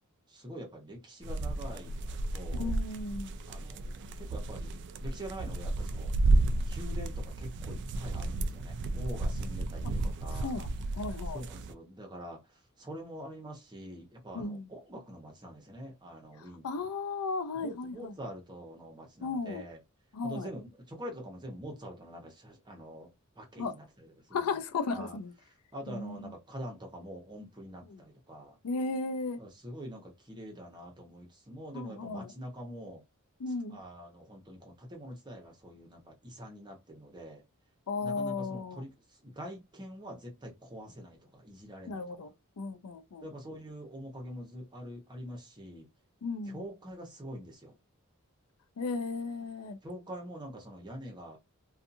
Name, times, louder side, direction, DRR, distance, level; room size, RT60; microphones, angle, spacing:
voice 1, 0.3-2.7 3.5-6.1 6.7-10.5 11.3-12.4 12.8-16.6 17.6-19.8 20.2-23.1 23.4-24.6 24.9-25.2 25.7-28.6 29.4-33.0 33.7-37.4 38.0-38.9 39.2-42.0 43.2-45.9 46.5-47.8 49.8-51.4, equal, 20° right, 0.9 m, -45 dB
sound 1, 1.2-11.7, right 2 dB, 55° right, 0.3 m, -32 dB
voice 2, 2.5-3.3 10.4-10.7 11.0-11.4 14.3-14.7 16.6-18.1 19.2-19.6 20.1-20.5 23.6-23.7 24.3-25.3 25.9-26.3 27.9-28.0 28.6-29.4 31.7-32.3 33.4-33.8 37.9-38.8 41.9-43.3 46.2-46.6 48.8-49.8, left 4 dB, 85° left, 0.5 m, -35 dB
2.6 x 2.3 x 2.6 m
head